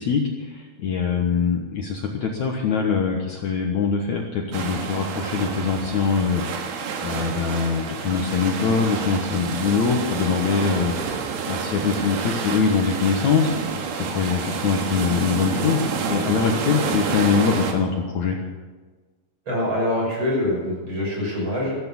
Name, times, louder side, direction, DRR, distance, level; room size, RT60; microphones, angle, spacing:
voice 1, 0.0-6.4 7.0-11.0 11.5-13.5 13.9-18.4, left 6 dB, 75° left, 1 dB, 1.7 m, -23 dB
sound 1, 4.5-17.7, right 5 dB, 65° right, 3.3 m, -29 dB
voice 2, 19.5-21.8, left 1 dB, 25° right, -3 dB, 6.9 m, -24 dB
14.5 x 13.5 x 7.2 m, 1.4 s
omnidirectional pair, 5.3 m